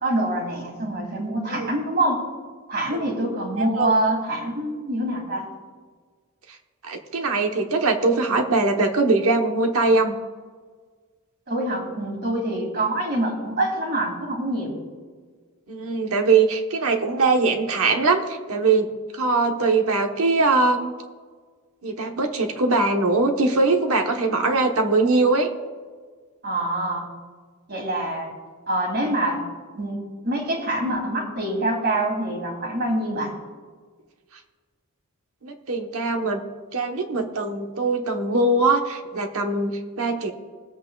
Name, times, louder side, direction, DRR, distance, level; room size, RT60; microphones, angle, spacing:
voice 1, 0.0-2.2 2.7-5.5 11.5-14.8 26.4-27.1 27.7-28.3 28.7-29.4 29.7-33.4, right 1 dB, 50° right, 0 dB, 2.5 m, -25 dB
voice 2, 3.6-3.9 6.8-10.1 15.7-20.9 21.8-25.5 35.4-36.4 36.7-40.3, right 3 dB, 65° right, 4 dB, 1.1 m, -21 dB
21.0 x 8.3 x 2.4 m, 1.5 s
head